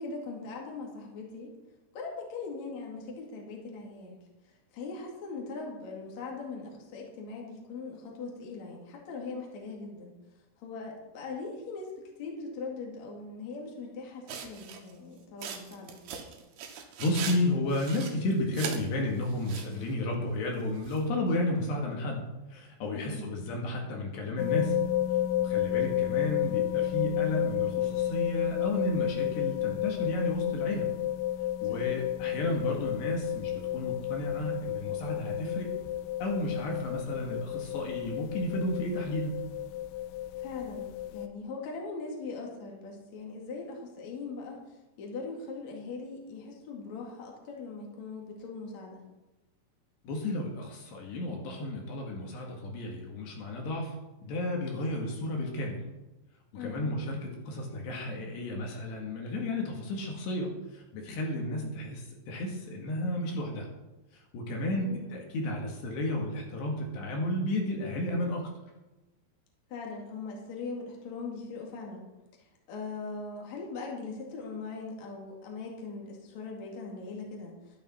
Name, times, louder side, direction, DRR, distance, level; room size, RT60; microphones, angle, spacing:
voice 1, 0.0-1.5 1.9-4.2 4.7-10.1 10.6-11.9 12.2-16.0 22.9-23.2 31.7-31.8 40.4-40.9 41.1-44.6 45.0-49.0 56.5-56.9 61.3-61.6 64.7-65.0 69.7-72.0 72.7-77.5, left 4 dB, 45° left, -1 dB, 2.9 m, -40 dB
sound 1, 14.3-14.9 15.4-17.4 17.7-18.8 19.3-19.8 20.8-21.0, right 7 dB, 70° right, 3.0 m, -39 dB
voice 2, 17.0-22.2 22.5-24.8 25.4-30.9 31.6-35.7 36.2-39.4 50.0-54.0 54.2-55.9 56.5-63.7 64.1-68.5, left 1 dB, 70° left, 0 dB, 3.7 m, -32 dB
sound 2, 24.4-41.3, left 12 dB, 85° left, 2.4 m, -31 dB
12.0 x 12.0 x 4.3 m, 1.1 s
omnidirectional pair, 5.4 m